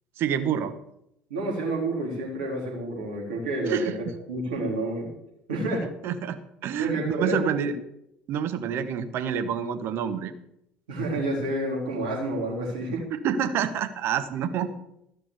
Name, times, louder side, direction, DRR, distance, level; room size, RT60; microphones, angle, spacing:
voice 1, 0.2-0.7 3.7-3.9 6.0-7.7 8.3-10.3 13.1-14.7, right 8 dB, 55° right, 10 dB, 1.1 m, -28 dB
voice 2, 1.3-5.1 5.5-5.9 6.8-7.5 10.9-13.0, right 2 dB, 75° right, -3 dB, 3.6 m, -29 dB
14.0 x 6.2 x 6.7 m, 0.80 s
figure-of-eight pair, 60°, 5 cm